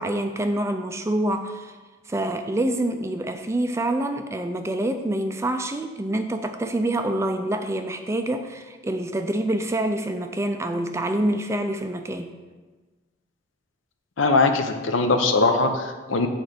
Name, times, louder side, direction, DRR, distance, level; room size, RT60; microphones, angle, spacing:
voice 1, 0.0-1.8 2.1-12.4, right 1 dB, 15° right, 7 dB, 0.4 m, -26 dB
voice 2, 14.2-16.3, left 3 dB, 70° left, 6 dB, 0.7 m, -21 dB
8.5 x 4.4 x 5.1 m, 1.3 s
head